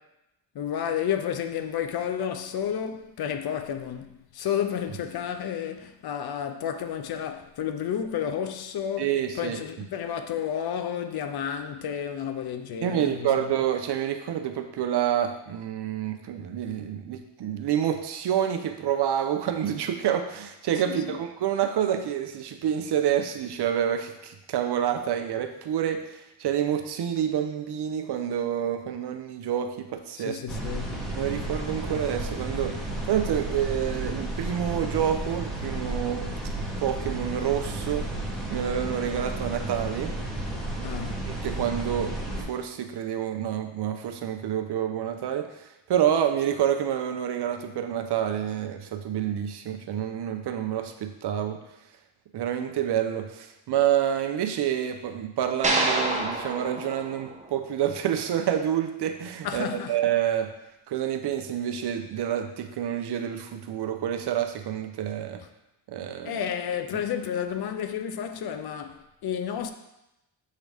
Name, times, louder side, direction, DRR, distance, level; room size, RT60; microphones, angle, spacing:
voice 1, 0.5-9.1 9.4-13.5 20.9-21.2 30.2-31.1 40.8-41.4 59.4-60.0 66.2-69.7, left 8 dB, 55° left, 0.6 m, -31 dB
voice 2, 9.0-9.6 12.8-30.4 31.2-32.8 33.1-36.3 36.8-38.1 38.5-40.1 41.3-51.6 52.3-60.5 60.9-65.4 65.9-66.4, right 9 dB, 60° right, 0.7 m, -28 dB
sound 1, 30.5-42.4, right 1 dB, ahead, 1.4 m, -33 dB
sound 2, 55.6-58.0, right 2 dB, 15° right, 0.9 m, -28 dB
7.3 x 3.8 x 3.4 m
cardioid pair, 90°, 45 cm